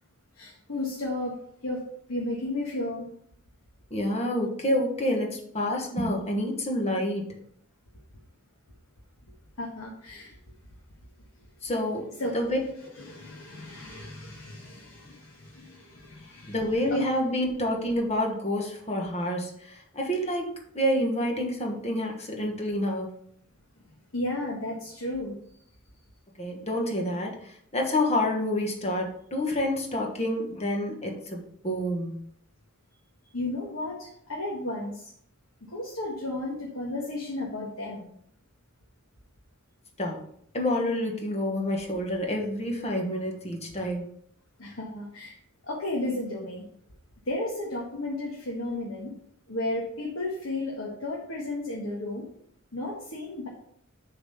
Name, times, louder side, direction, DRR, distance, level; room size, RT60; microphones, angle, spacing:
voice 1, 0.3-1.4 1.6-1.8 2.1-3.0 9.6-10.4 12.2-12.4 13.0-16.5 16.9-17.0 24.1-25.4 33.3-35.1 35.7-38.1 44.6-45.4 45.6-46.6 47.3-49.1 49.5-52.3 52.7-53.5, left 2 dB, 70° left, -2 dB, 1.4 m, -33 dB
voice 2, 3.9-7.3 11.6-12.1 12.3-12.6 12.8-12.9 16.5-23.2 26.4-32.3 40.0-40.2 40.5-44.1, left 1 dB, 30° left, 1 dB, 1.4 m, -28 dB
6.9 x 4.1 x 5.6 m, 0.66 s
head